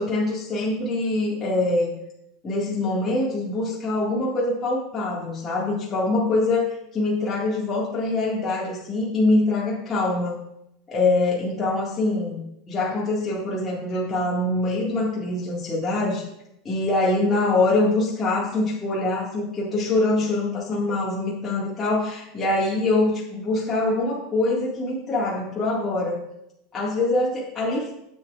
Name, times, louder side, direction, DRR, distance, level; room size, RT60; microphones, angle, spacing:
voice 1, 0.0-1.9 2.4-10.3 10.9-16.2 16.6-26.2 26.7-27.9, left 2 dB, 25° left, -6 dB, 1.9 m, -24 dB
9.4 x 7.4 x 2.4 m, 0.81 s
supercardioid pair, 120°, 0 cm